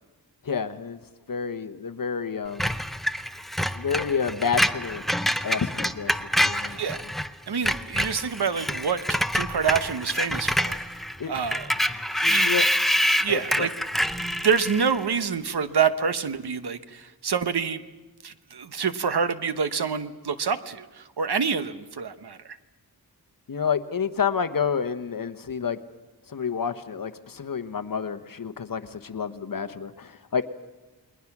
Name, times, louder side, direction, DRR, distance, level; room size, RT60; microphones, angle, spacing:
voice 1, 0.4-1.0 1.3-2.7 3.7-5.1 5.4-6.8 11.2-11.3 12.2-12.7 13.3-13.7 23.5-25.8 26.3-30.5, left 6 dB, 55° left, 9 dB, 1.0 m, -29 dB
Screech, 2.6-7.3 7.5-15.0, equal, ahead, 0.7 m, -26 dB
voice 2, 7.5-10.8 11.3-11.7 12.1-12.5 13.1-13.7 14.2-17.8 18.2-22.4, right 6 dB, 70° right, 11 dB, 1.1 m, -27 dB
29.0 x 21.0 x 6.0 m, 1.2 s
wide cardioid pair, 100°, 40 cm